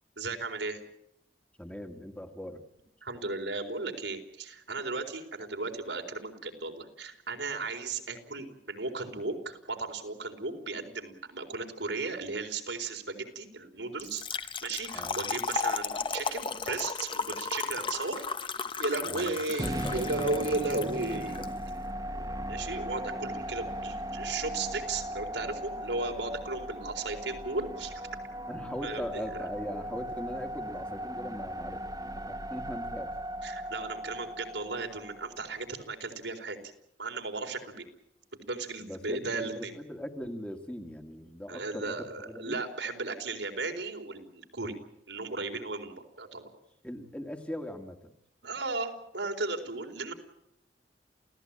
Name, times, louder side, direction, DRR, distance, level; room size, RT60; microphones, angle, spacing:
voice 1, 0.2-0.8 3.0-18.2 18.8-21.5 22.5-28.0 28.8-29.0 33.4-36.6 37.0-37.8 38.4-39.7 41.5-44.8 45.1-46.4 48.4-50.1, right 3 dB, 80° right, 4 dB, 4.3 m, -35 dB
voice 2, 1.6-2.6 14.9-15.2 19.0-19.3 19.6-20.1 21.4-21.6 28.5-31.9 32.1-33.2 38.8-42.6 46.8-48.1, equal, 5° left, 4 dB, 1.9 m, -40 dB
Trickle dribble / Fill (with liquid), 14.0-21.5, left 5 dB, 30° left, 1.1 m, -35 dB
sound 1, 19.6-35.7, equal, 20° right, 1.5 m, -38 dB
28.5 x 17.0 x 8.9 m, 0.80 s
head